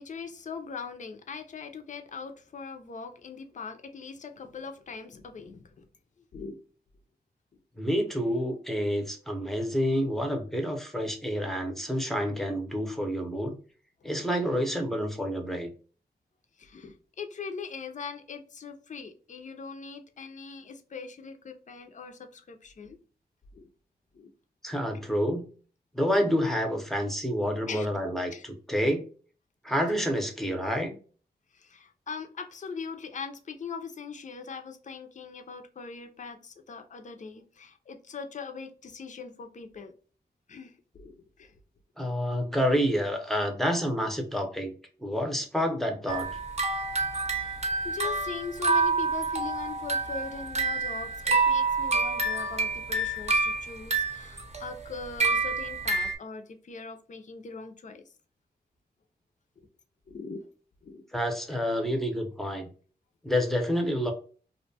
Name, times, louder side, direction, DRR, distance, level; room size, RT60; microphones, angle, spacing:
voice 1, 0.0-5.9 6.3-6.6 14.0-14.1 16.6-23.0 23.5-23.7 24.1-24.3 27.7-27.9 28.3-28.4 31.5-39.9 40.5-41.5 47.3-58.0 59.6-59.7 60.1-60.4 60.8-61.0, left 5 dB, 45° left, 5 dB, 0.5 m, -41 dB
voice 2, 7.8-13.5 14.0-15.7 24.6-25.4 25.9-29.0 29.6-30.9 42.0-44.7 45.0-46.3 61.1-62.7 63.2-64.1, equal, ahead, 3 dB, 0.6 m, -28 dB
sound 1, 46.1-56.2, right 3 dB, 40° right, 0.7 m, -28 dB
2.5 x 2.2 x 2.7 m, 0.40 s
wide cardioid pair, 85°, 17 cm